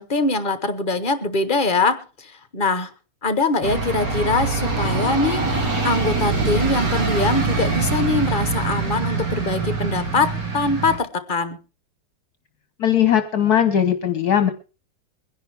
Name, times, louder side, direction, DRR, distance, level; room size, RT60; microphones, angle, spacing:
voice 1, 0.0-2.9 3.2-11.6, left 3 dB, 35° left, 12 dB, 1.0 m, -23 dB
sound 1, 3.6-11.0, right 3 dB, 65° right, 2.8 m, -24 dB
voice 2, 12.8-14.5, left 9 dB, 60° left, 9 dB, 1.3 m, -18 dB
23.0 x 10.5 x 3.4 m, 0.33 s
omnidirectional pair, 2.1 m